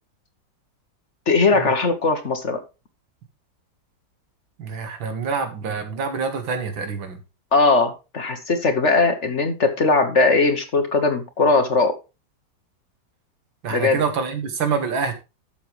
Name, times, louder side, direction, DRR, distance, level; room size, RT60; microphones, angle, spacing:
voice 1, 1.3-2.6 7.5-11.9 13.7-14.0, left 3 dB, 45° left, 1.2 m, -19 dB
voice 2, 4.6-7.2 13.6-15.1, right 5 dB, 85° right, 2.4 m, -26 dB
12.5 x 7.2 x 3.2 m
omnidirectional pair, 2.0 m